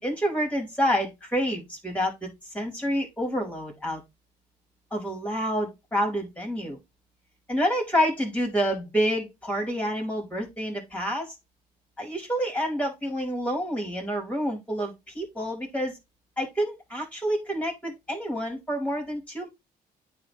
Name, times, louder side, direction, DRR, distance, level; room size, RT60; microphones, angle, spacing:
voice 1, 0.0-4.0 4.9-6.8 7.5-11.3 12.0-16.0 16.4-19.5, equal, 5° left, 4.2 m, -28 dB
9.3 x 3.2 x 3.4 m
supercardioid pair, 60°, 18 cm